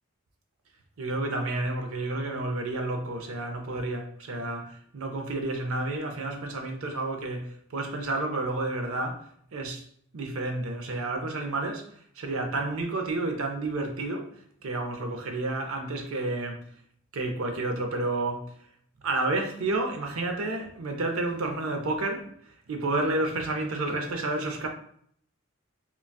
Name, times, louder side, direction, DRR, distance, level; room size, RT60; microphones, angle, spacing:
voice 1, 1.0-9.2 9.5-9.8 10.1-11.8 12.2-14.3 14.6-16.6 17.1-18.5 19.0-22.3 22.7-24.7, right 2 dB, 75° right, 0.5 m, -30 dB
3.8 x 2.3 x 2.2 m
head